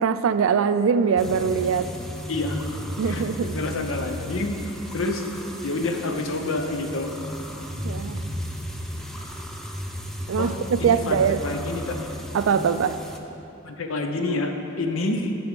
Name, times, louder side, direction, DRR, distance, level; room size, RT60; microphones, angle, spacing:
voice 1, 0.0-1.9 3.0-3.6 7.8-8.2 10.3-11.4 12.3-13.0, right 6 dB, 85° right, 12 dB, 0.4 m, -22 dB
sound 1, 1.2-13.2, equal, ahead, 0.5 m, -34 dB
voice 2, 2.3-2.7 3.0-4.5 4.9-5.3 5.6-7.2 10.4-12.0 13.6-15.3, left 2 dB, 90° left, 5 dB, 0.8 m, -28 dB
9.6 x 6.2 x 5.3 m, 2.9 s
head